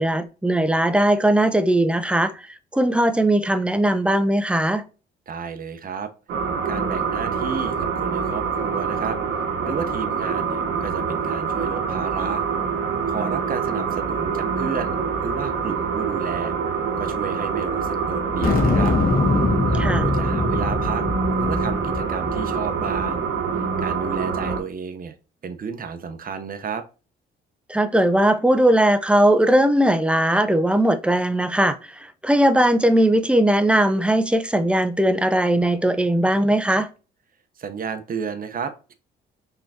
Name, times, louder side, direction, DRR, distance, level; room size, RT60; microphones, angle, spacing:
voice 1, 0.0-2.5 2.7-4.8 19.8-20.0 27.7-36.9, right 1 dB, 5° right, 0.6 m, -19 dB
voice 2, 5.3-6.1 6.6-12.4 13.1-16.5 17.0-19.0 19.7-21.0 21.4-23.3 23.6-25.1 25.4-26.8 37.6-38.9, right 6 dB, 45° right, 0.8 m, -32 dB
sound 1, 6.3-24.6, right 5 dB, 75° right, 1.1 m, -25 dB
sound 2, 18.4-23.1, left 3 dB, 50° left, 1.6 m, -23 dB
5.5 x 3.5 x 2.7 m
cardioid pair, 90°, 20 cm